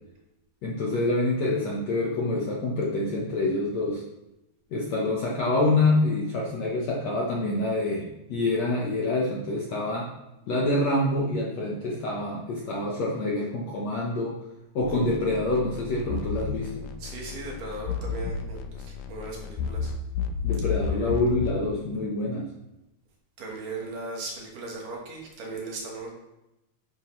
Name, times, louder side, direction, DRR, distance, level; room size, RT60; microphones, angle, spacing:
voice 1, 0.6-4.0 4.7-10.1 10.5-14.4 14.7-16.9 20.4-22.5, left 2 dB, 65° left, -4 dB, 1.7 m, -26 dB
sound 1, 14.8-21.7, left 6 dB, 90° left, 1.9 m, -32 dB
voice 2, 17.0-19.9 20.9-21.1 23.4-26.1, right 2 dB, 65° right, -1 dB, 2.8 m, -37 dB
9.9 x 9.0 x 3.2 m, 0.94 s
omnidirectional pair, 4.6 m